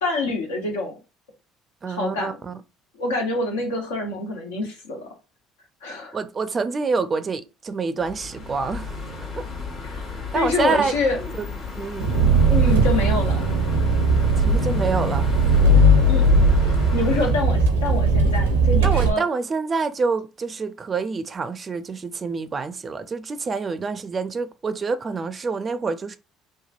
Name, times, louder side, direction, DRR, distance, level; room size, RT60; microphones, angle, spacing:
voice 1, 0.0-1.0 1.8-2.4 3.0-5.0 5.8-6.2 9.8-11.2 12.5-13.5 16.1-16.4 16.9-19.2, left 3 dB, 85° left, 0.8 m, -26 dB
voice 2, 1.8-2.6 6.1-9.4 10.3-11.0 11.4-11.5 11.8-12.1 14.3-15.3 18.8-26.2, right 4 dB, 35° right, 0.4 m, -27 dB
sound 1, 8.0-17.3, left 4 dB, 55° left, 1.3 m, -35 dB
Engine, 12.0-19.1, right 2 dB, 90° right, 0.5 m, -18 dB
3.1 x 2.2 x 2.4 m
hypercardioid pair, 60°, 0 cm